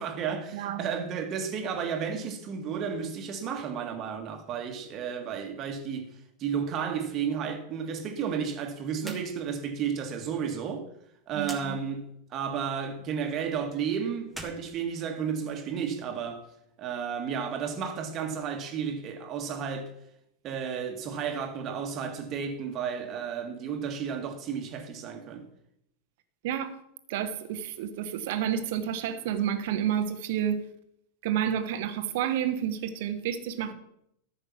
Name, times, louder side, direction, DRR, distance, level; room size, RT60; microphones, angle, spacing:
voice 1, 0.0-6.1 6.4-10.8 11.3-12.0 12.3-16.4 16.8-19.9 20.4-25.4, right 7 dB, 35° right, 1.8 m, -32 dB
voice 2, 0.5-0.8 9.0-9.2 11.3-11.8 26.4-26.8 27.1-30.6 31.2-33.7, right 9 dB, 50° right, 1.3 m, -30 dB
sound 1, 9.0-9.3 9.6-9.7 11.4-11.7 14.2-15.5, right 1 dB, 5° right, 1.7 m, -43 dB
14.0 x 6.6 x 5.9 m
figure-of-eight pair, 90°, 0 cm